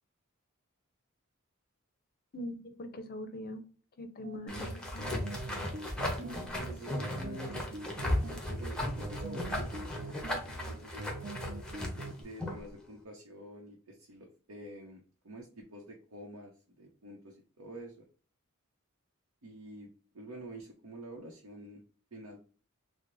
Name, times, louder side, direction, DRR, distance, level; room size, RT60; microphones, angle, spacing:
voice 1, 2.3-3.6 4.0-5.1, left 1 dB, 45° left, 8 dB, 0.5 m, -42 dB
sound 1, 4.2-12.2, right 3 dB, 40° right, 0.4 m, -44 dB
sound 2, 4.5-12.7, left 1 dB, 5° left, 0.7 m, -36 dB
voice 2, 6.2-7.8 8.3-10.0 10.3-11.2 12.2-18.0 19.4-21.8 22.1-22.4, right 1 dB, 80° right, -1 dB, 0.7 m, -48 dB
3.9 x 2.0 x 3.0 m, 0.41 s
head